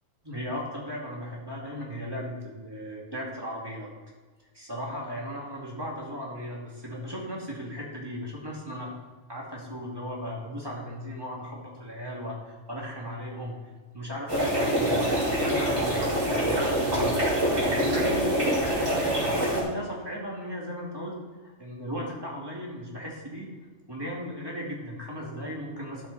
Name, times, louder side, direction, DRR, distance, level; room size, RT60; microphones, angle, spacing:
voice 1, 0.2-3.9 4.5-8.9 9.3-13.6 13.9-23.5 23.9-26.1, equal, 20° right, -3 dB, 2.5 m, -36 dB
sound 1, 14.3-19.6, right 1 dB, 75° right, 5.1 m, -25 dB
13.0 x 9.4 x 4.2 m, 1.3 s
omnidirectional pair, 1.4 m